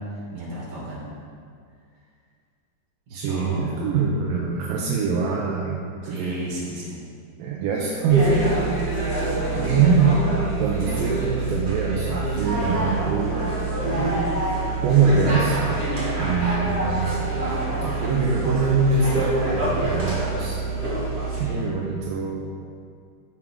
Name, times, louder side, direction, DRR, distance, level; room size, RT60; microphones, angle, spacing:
voice 1, 0.3-1.1 3.1-3.8 6.0-7.0 21.3-21.7, right 1 dB, 55° right, -6 dB, 3.8 m, -33 dB
voice 2, 3.1-6.4 7.4-8.5 9.5-10.3 10.6-13.4 14.8-15.6 16.2-17.2 17.8-20.6 21.4-22.5, right 5 dB, 80° right, -2 dB, 2.4 m, -23 dB
sound 1, 8.1-21.4, right 2 dB, 30° right, 1.2 m, -26 dB
12.5 x 7.2 x 3.7 m, 2.2 s
omnidirectional pair, 4.1 m